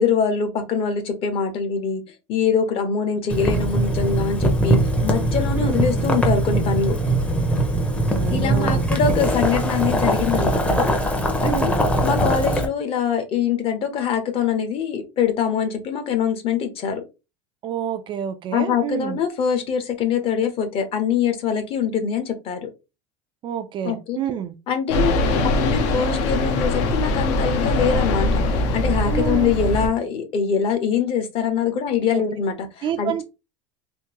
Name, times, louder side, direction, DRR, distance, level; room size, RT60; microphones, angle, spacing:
voice 1, 0.0-2.0 2.3-7.0 8.3-11.0 11.4-11.7 12.0-17.0 18.5-22.7 23.8-24.2 24.7-25.2 25.4-28.4 28.7-33.1, left 7 dB, 35° left, 0.9 m, -23 dB
Boiling, 3.3-12.6, right 1 dB, 10° left, 0.7 m, -21 dB
voice 2, 5.5-5.9 8.1-8.8 11.4-11.8 17.6-19.2 23.4-24.5 29.1-29.5 32.1-32.2 32.8-33.2, right 9 dB, 30° right, 0.4 m, -28 dB
sound 1, 24.9-29.9, left 2 dB, 65° left, 0.9 m, -22 dB
3.5 x 2.6 x 2.9 m
supercardioid pair, 140°, 16 cm